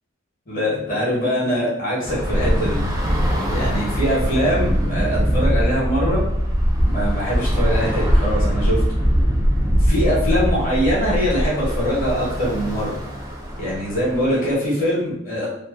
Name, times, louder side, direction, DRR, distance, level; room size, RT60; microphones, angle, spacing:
voice 1, 0.5-2.8 3.5-6.2 6.8-8.8 9.7-12.9 13.6-15.5, equal, 45° left, -6 dB, 1.0 m, -22 dB
Bus / Traffic noise roadway noise, 2.1-14.5, equal, 15° right, 0.4 m, -21 dB
2.6 x 2.0 x 2.3 m, 0.81 s
head